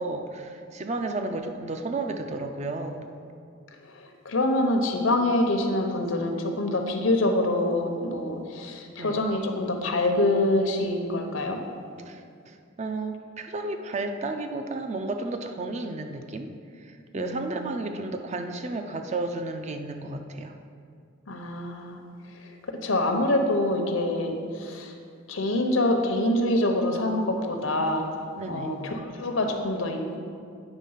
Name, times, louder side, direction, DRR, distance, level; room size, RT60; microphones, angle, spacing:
voice 1, 0.0-3.1 9.0-9.2 12.1-20.6 28.4-28.8, right 2 dB, 35° right, 6 dB, 0.4 m, -33 dB
voice 2, 3.9-11.6 17.1-17.7 21.3-22.0 22.4-24.9 25.3-28.1 28.5-30.2, left 1 dB, 90° left, 4 dB, 0.9 m, -26 dB
9.0 x 3.6 x 5.6 m, 2.3 s
head